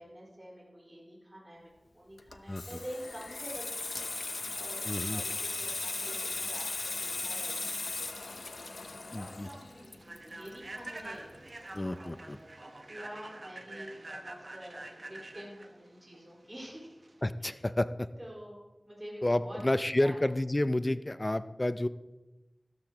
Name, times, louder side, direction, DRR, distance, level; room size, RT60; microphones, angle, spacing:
voice 1, 0.0-12.5 12.9-17.0 17.4-17.6 18.2-19.6 20.0-20.2, equal, 25° right, -4 dB, 4.8 m, -48 dB
Water tap faucet / Sink (filling or washing), 2.2-11.5 11.8-12.0, left 3 dB, 70° left, 0.7 m, -37 dB
voice 2, 4.9-5.2 9.1-9.5 11.7-12.4 17.2-18.1 19.2-21.9, left 1 dB, 30° left, 13 dB, 0.5 m, -30 dB
Human voice / Train, 8.3-17.2, right 2 dB, 55° right, 1.1 m, -47 dB
14.0 x 13.0 x 3.0 m, 1.1 s
wide cardioid pair, 65°, 0 cm